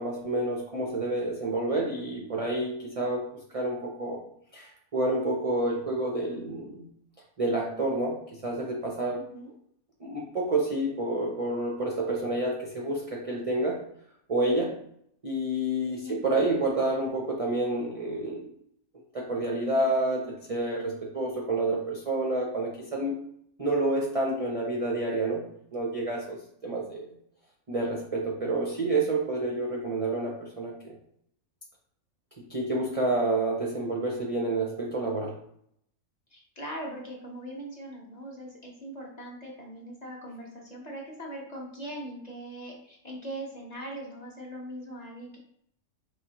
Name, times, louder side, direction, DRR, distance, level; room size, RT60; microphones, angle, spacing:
voice 1, 0.0-3.3 3.5-4.2 4.5-6.9 7.4-9.2 10.0-13.8 14.3-14.8 15.2-18.5 19.1-23.1 23.6-25.5 25.7-27.2 27.7-31.0 32.5-35.4, right 2 dB, 45° right, -2 dB, 0.4 m, -29 dB
voice 2, 9.2-9.5 15.8-16.2 36.3-45.4, right 1 dB, 35° left, -3 dB, 0.9 m, -41 dB
4.8 x 3.4 x 2.8 m, 0.69 s
omnidirectional pair, 1.5 m